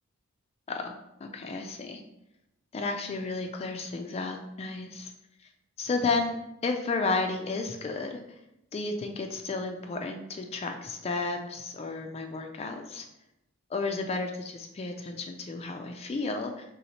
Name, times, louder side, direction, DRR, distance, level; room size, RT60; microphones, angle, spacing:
voice 1, 1.2-2.0 2.7-5.1 5.8-6.4 6.6-8.2 8.7-13.1 13.7-16.6, left 3 dB, 30° left, 4 dB, 0.3 m, -32 dB
4.1 x 3.5 x 2.8 m, 0.85 s
head